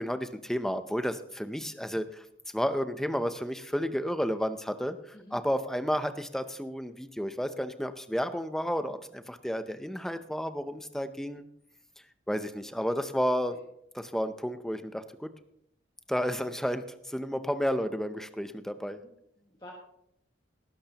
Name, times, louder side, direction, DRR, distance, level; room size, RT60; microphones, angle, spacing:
voice 1, 0.0-2.2 2.5-11.4 12.3-13.6 13.9-15.3 16.1-19.0, equal, ahead, 10 dB, 0.6 m, -32 dB
voice 2, 19.0-19.7, left 1 dB, 20° left, -1 dB, 1.6 m, -51 dB
18.5 x 11.5 x 2.9 m, 0.75 s
head